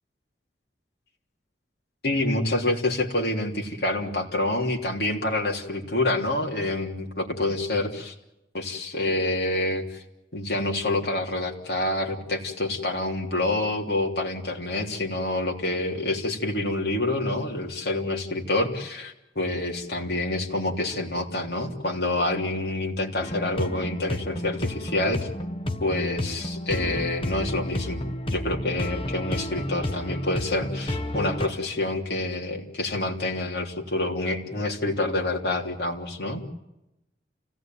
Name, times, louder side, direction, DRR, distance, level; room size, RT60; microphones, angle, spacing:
voice 1, 2.0-8.1 8.5-10.0 10.3-25.3 25.8-28.0 28.3-36.5, left 2 dB, 60° left, -1 dB, 3.4 m, -27 dB
sound 1, 23.2-31.5, left 1 dB, 30° left, 1.3 m, -31 dB
29.5 x 17.0 x 9.3 m, 0.93 s
head